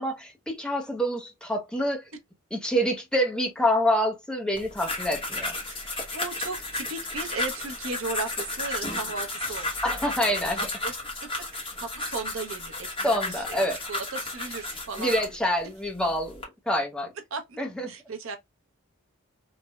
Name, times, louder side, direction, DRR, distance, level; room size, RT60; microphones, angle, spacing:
voice 1, 0.0-2.1 2.5-5.5 9.8-10.6 13.0-13.8 15.0-17.1 17.6-17.9, equal, 5° left, 0.5 m, -27 dB
sound 1, 4.5-15.4 16.0-16.4, left 2 dB, 25° left, 0.9 m, -33 dB
voice 2, 5.7-10.9 11.5-15.1 17.3-17.6 17.9-18.4, right 3 dB, 65° right, 0.6 m, -36 dB
3.2 x 2.0 x 2.2 m
head